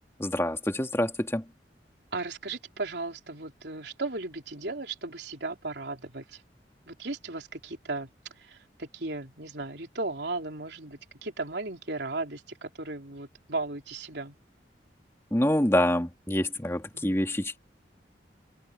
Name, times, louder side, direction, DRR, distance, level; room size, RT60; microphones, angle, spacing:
voice 1, 0.2-1.4 15.3-17.6, left 1 dB, 15° left, 2.1 m, -26 dB
voice 2, 2.1-6.2 6.9-8.1 8.5-14.4 16.9-17.2, right 3 dB, 75° right, 3.3 m, -36 dB
head